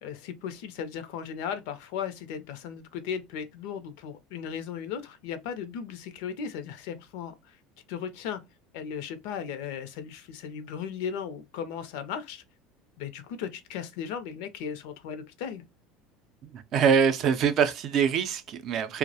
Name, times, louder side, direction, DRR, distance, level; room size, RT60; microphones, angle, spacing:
voice 1, 0.0-7.6 7.9-8.4 8.7-12.4 13.0-15.6, left 7 dB, 75° left, 0.5 m, -36 dB
voice 2, 16.4-19.0, right 7 dB, 45° right, 0.4 m, -24 dB
2.2 x 2.0 x 2.7 m
supercardioid pair, 130°, 0 cm